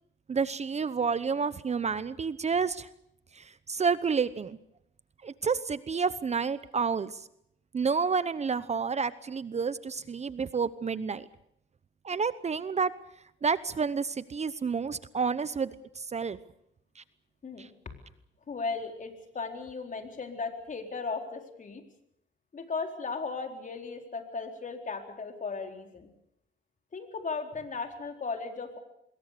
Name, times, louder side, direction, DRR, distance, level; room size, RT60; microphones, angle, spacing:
voice 1, 0.3-2.9 3.3-4.6 5.2-7.3 7.7-11.3 12.0-12.9 13.4-16.4 17.0-17.1 17.6-17.7, right 5 dB, 35° right, 15 dB, 0.9 m, -30 dB
voice 2, 18.5-21.8 22.5-26.1 26.9-28.8, left 4 dB, 40° left, 4 dB, 4.2 m, -36 dB
24.5 x 21.5 x 6.8 m, 0.76 s
cardioid pair, 90°, 20 cm